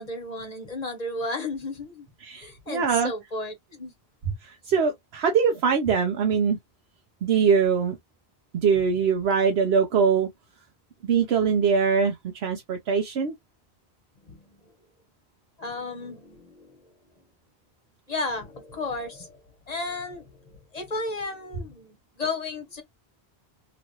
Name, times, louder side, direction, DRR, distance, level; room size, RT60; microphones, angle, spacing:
voice 1, 0.0-2.1 2.3-3.9 14.3-14.4 15.6-16.8 18.1-19.4 19.7-22.8, left 2 dB, 40° left, 1.1 m, -33 dB
voice 2, 2.2-3.1 4.4-6.6 7.2-8.0 8.5-10.3 11.0-13.3, right 6 dB, 75° right, 0.9 m, -23 dB
2.9 x 2.5 x 3.0 m
omnidirectional pair, 1.1 m